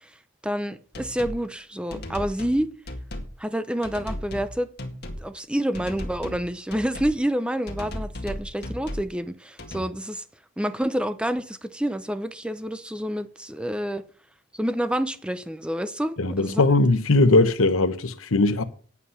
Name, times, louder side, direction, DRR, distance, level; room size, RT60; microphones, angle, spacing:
voice 1, 0.4-2.7 3.4-4.7 5.2-10.2 10.6-14.0 14.5-16.6, equal, 5° right, 0.6 m, -28 dB
sound 1, 0.9-1.4 1.9-2.6 2.9-3.3 3.8-4.5 4.8-5.2 5.7-6.4 6.7-7.1 7.7-9.1 9.6-9.8, left 1 dB, 50° left, 2.0 m, -35 dB
voice 2, 16.2-18.6, left 2 dB, 85° left, 1.0 m, -19 dB
9.7 x 8.4 x 5.7 m
head